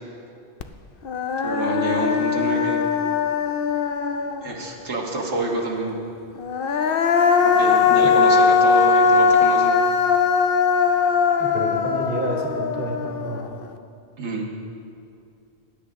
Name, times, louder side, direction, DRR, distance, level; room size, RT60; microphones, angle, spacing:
Human voice, 0.6-0.7 1.1-4.7 6.4-13.6, left 5 dB, 60° left, 0.8 m, -20 dB
voice 1, 1.4-2.8 4.4-5.9 7.4-9.8 14.2-14.5, right 2 dB, 85° right, -2 dB, 1.8 m, -27 dB
voice 2, 11.4-13.5, right 1 dB, 50° right, 0 dB, 1.7 m, -29 dB
19.5 x 10.0 x 3.6 m, 2.6 s
omnidirectional pair, 1.1 m